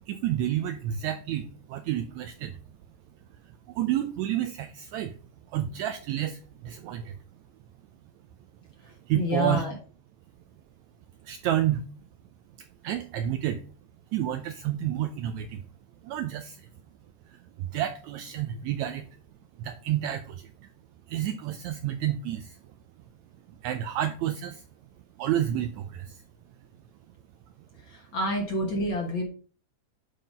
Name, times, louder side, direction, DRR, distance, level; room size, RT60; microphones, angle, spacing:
voice 1, 0.1-2.6 3.7-5.2 5.5-7.2 8.8-9.6 11.2-11.8 12.6-13.6 14.1-15.6 16.0-16.7 17.3-19.1 19.6-20.7 21.1-22.6 23.5-24.7 25.2-26.2, right 11 dB, 80° right, 9 dB, 1.7 m, -30 dB
voice 2, 9.1-9.7 27.9-29.2, left 1 dB, 50° left, 1 dB, 1.6 m, -28 dB
9.0 x 3.9 x 5.1 m, 0.38 s
omnidirectional pair, 3.7 m